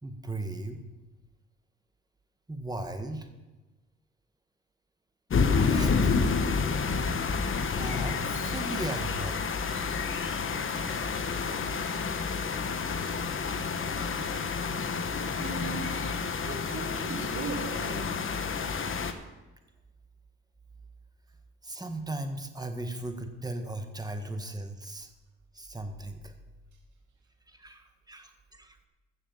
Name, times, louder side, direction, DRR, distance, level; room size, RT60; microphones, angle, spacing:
voice 1, 0.0-0.8 2.5-3.3 5.6-6.3 7.8-9.4 21.6-25.1 25.5-26.3 27.5-28.9, right 2 dB, 15° right, 6 dB, 1.7 m, -37 dB
sound 1, 5.3-19.1, left 5 dB, 45° left, 1.2 m, -29 dB
voice 2, 15.4-16.1 16.4-18.2, right 3 dB, 70° right, 0 dB, 3.0 m, -38 dB
15.0 x 6.7 x 7.3 m, 1.1 s
cardioid pair, 90°, 30 cm